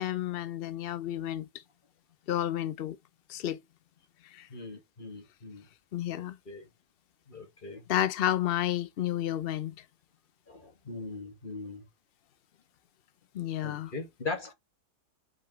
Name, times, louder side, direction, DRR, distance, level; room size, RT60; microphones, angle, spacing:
voice 1, 0.0-1.5 2.3-3.0 3.3-3.6 4.2-4.5 5.9-6.4 7.9-9.7 13.3-13.9, left 12 dB, 75° left, 0.5 m, -31 dB
voice 2, 4.5-5.7 6.1-6.7 7.3-7.8 10.5-11.9 13.6-14.5, left 3 dB, 30° left, 2.1 m, -40 dB
8.0 x 5.1 x 3.1 m
omnidirectional pair, 1.7 m